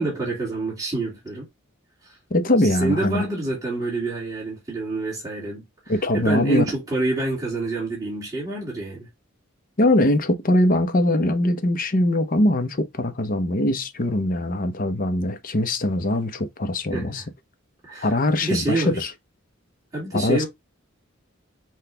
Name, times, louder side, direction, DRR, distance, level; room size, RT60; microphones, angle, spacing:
voice 1, 0.0-1.5 2.0-2.2 2.6-9.1 16.9-17.2 17.8-19.0 19.9-20.5, right 2 dB, 20° right, 1.9 m, -27 dB
voice 2, 2.3-3.2 5.9-6.6 9.8-17.2 18.0-19.1 20.1-20.4, left 1 dB, 45° left, 0.8 m, -22 dB
5.9 x 2.4 x 3.3 m
head